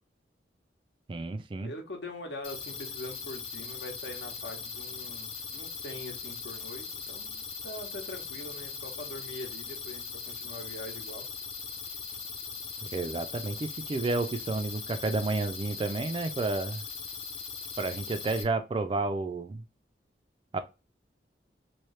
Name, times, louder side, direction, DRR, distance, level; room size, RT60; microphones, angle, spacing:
voice 1, 1.1-1.7 12.8-16.8 17.8-19.6 20.5-20.6, right 3 dB, 30° right, 0.3 m, -31 dB
voice 2, 1.6-11.3, left 1 dB, 75° left, 1.0 m, -43 dB
sound 1, 2.4-18.4, left 5 dB, 35° left, 0.6 m, -40 dB
3.1 x 2.7 x 3.1 m
head